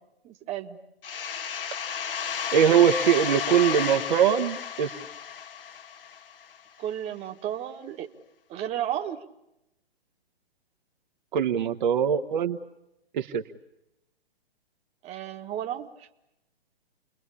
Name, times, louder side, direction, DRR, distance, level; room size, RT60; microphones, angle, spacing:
voice 1, 0.2-0.8 6.8-8.1 8.5-9.2 15.0-16.1, right 11 dB, 20° right, 4 dB, 1.7 m, -33 dB
sound 1, 1.0-6.6, left 8 dB, 60° left, 1.8 m, -32 dB
voice 2, 2.5-4.9 11.3-12.6 13.1-13.4, right 8 dB, 50° right, 4 dB, 1.4 m, -22 dB
29.5 x 21.5 x 8.5 m, 0.87 s
figure-of-eight pair, 125°, 31 cm